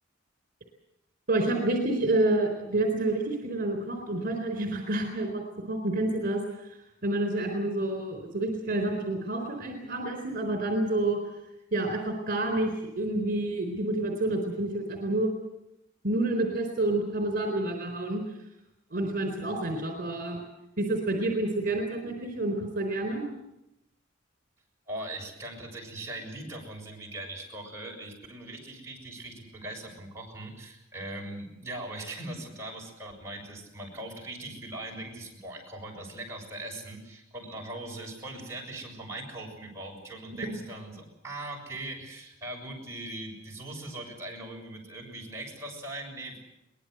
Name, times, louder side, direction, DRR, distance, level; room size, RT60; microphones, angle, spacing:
voice 1, 1.3-6.7 7.0-11.2 11.7-15.3 16.0-18.2 18.9-20.4 20.8-23.2 40.4-40.6, right 2 dB, 50° right, 4 dB, 4.1 m, -28 dB
voice 2, 24.9-46.4, right 1 dB, 15° right, -2 dB, 6.8 m, -40 dB
23.0 x 20.0 x 8.1 m, 0.87 s
head